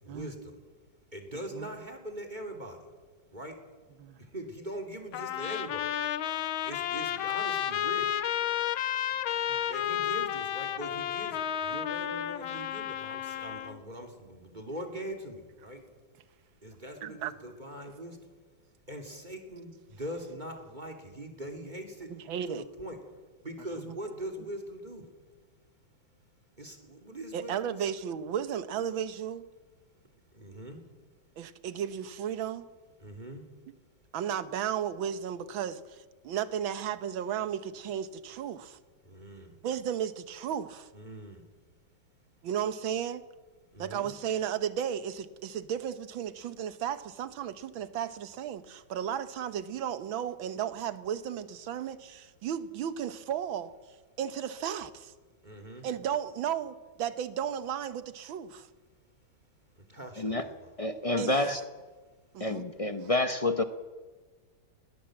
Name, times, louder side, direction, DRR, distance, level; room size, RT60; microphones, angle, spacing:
voice 1, 0.0-0.6 1.1-2.9 3.3-3.6 4.2-6.0 6.6-8.1 9.7-15.8 16.6-18.2 18.9-22.2 22.5-23.0 23.4-25.1 26.6-27.8 30.3-30.8 33.0-33.5 39.0-39.6 40.9-41.5 43.7-44.1 55.4-55.9 59.8-60.7, right 1 dB, 20° right, 6 dB, 2.7 m, -42 dB
voice 2, 1.3-1.7 4.0-4.2 9.5-9.7 17.0-17.3 22.1-22.6 23.8-24.0 27.3-29.4 31.4-32.7 34.1-36.0 36.2-38.8 39.6-40.9 42.4-43.2 43.8-53.7 54.2-55.1 55.8-58.7 61.2-61.4 62.3-62.7, right 9 dB, 80° right, 12 dB, 1.8 m, -34 dB
Trumpet, 5.1-13.8, left 10 dB, 90° left, 1.7 m, -32 dB
voice 3, 60.8-61.6 62.4-63.6, left 2 dB, 60° left, 9 dB, 0.3 m, -28 dB
21.0 x 18.0 x 7.7 m, 1.4 s
omnidirectional pair, 2.1 m